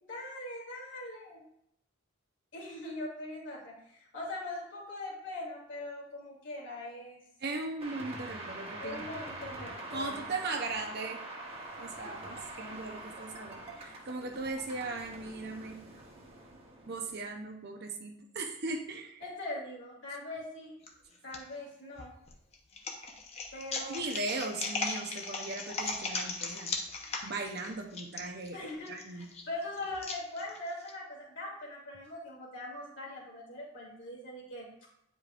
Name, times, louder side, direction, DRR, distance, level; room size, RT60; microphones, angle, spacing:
voice 1, 0.0-1.4 2.5-7.2 8.8-10.3 13.4-13.8 19.2-20.7 21.2-22.1 23.5-24.0 28.5-34.7, left 2 dB, 65° left, -4 dB, 2.6 m, -41 dB
voice 2, 7.4-9.0 9.9-11.2 11.8-15.8 16.9-19.2 23.8-26.7 27.2-29.3, right 3 dB, 55° right, 3 dB, 0.7 m, -38 dB
sound 1, 7.8-17.4, right 2 dB, 30° right, 1.1 m, -45 dB
sound 2, 20.8-21.4 22.0-30.9, left 3 dB, 35° left, 0.8 m, -38 dB
9.1 x 5.1 x 2.5 m, 0.73 s
head